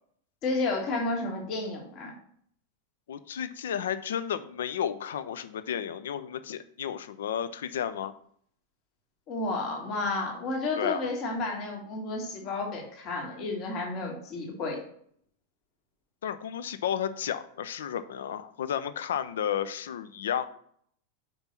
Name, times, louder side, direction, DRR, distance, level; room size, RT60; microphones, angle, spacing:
voice 1, 0.4-2.1 9.3-14.8, left 3 dB, 40° left, 0 dB, 1.8 m, -31 dB
voice 2, 3.1-8.1 10.8-11.0 16.2-20.5, left 9 dB, 60° left, 12 dB, 0.5 m, -32 dB
5.4 x 5.3 x 5.9 m, 0.63 s
figure-of-eight pair, 90°, 0 cm